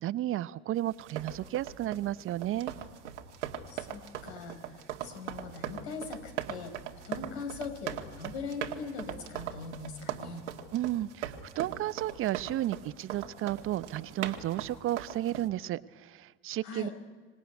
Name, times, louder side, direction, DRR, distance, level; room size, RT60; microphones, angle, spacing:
voice 1, 0.0-2.7 10.7-16.9, right 14 dB, 35° right, 15 dB, 0.8 m, -33 dB
sound 1, 0.9-15.5, right 9 dB, 75° right, 2.0 m, -40 dB
voice 2, 3.7-6.8 7.0-10.5 16.6-16.9, left 4 dB, 65° left, 6 dB, 4.9 m, -41 dB
26.0 x 18.0 x 9.5 m, 1.4 s
hypercardioid pair, 80°, 35 cm